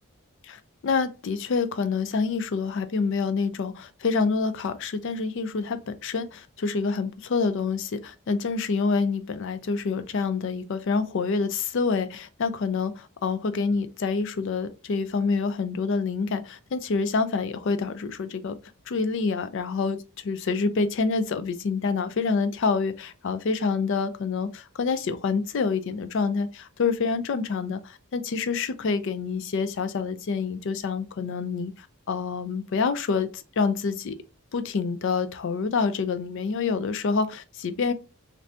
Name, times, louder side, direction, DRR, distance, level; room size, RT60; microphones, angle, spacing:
voice 1, 0.8-18.5 18.9-34.1 34.5-37.9, left 4 dB, 55° left, 0.4 m, -27 dB
3.2 x 2.6 x 2.5 m
head